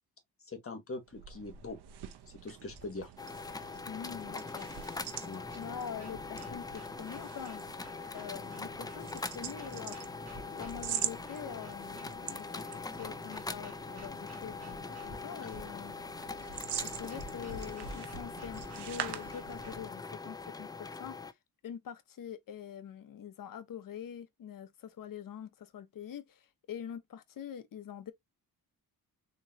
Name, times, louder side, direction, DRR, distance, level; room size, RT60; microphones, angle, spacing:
voice 1, 0.4-1.8 2.4-3.1 5.2-5.5, left 2 dB, 35° left, 1.4 m, -42 dB
sound 1, 1.0-20.0, right 11 dB, 85° right, 0.8 m, -45 dB
sound 2, 1.9-19.9, right 1 dB, 40° right, 1.5 m, -54 dB
sound 3, 3.2-21.3, left 4 dB, 10° left, 0.3 m, -42 dB
voice 2, 3.8-4.7 5.5-7.6 8.1-10.0 10.5-15.9 16.8-21.2 21.6-28.1, left 8 dB, 55° left, 0.8 m, -44 dB
3.8 x 3.0 x 2.8 m
cardioid pair, 100°, 39 cm